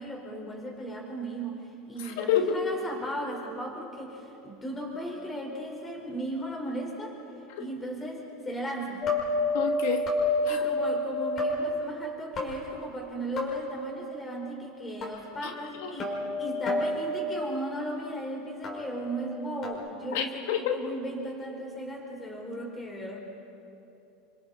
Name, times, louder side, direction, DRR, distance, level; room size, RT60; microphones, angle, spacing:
voice 1, 0.0-7.2 7.6-9.1 10.4-23.2, right 1 dB, 15° left, 0 dB, 4.6 m, -36 dB
voice 2, 2.0-2.7 7.6-7.7 9.5-10.1 10.4-10.6 15.4-15.5 15.8-15.9 20.1-20.8, left 8 dB, 70° left, 5 dB, 1.4 m, -28 dB
sound 1, 9.0-11.5 12.4-13.1 13.4-13.8 15.0-15.1 16.0-17.3 18.6-19.7, left 2 dB, 30° left, 5.5 m, -29 dB
29.5 x 24.5 x 4.2 m, 2.9 s
supercardioid pair, 145°, 0 cm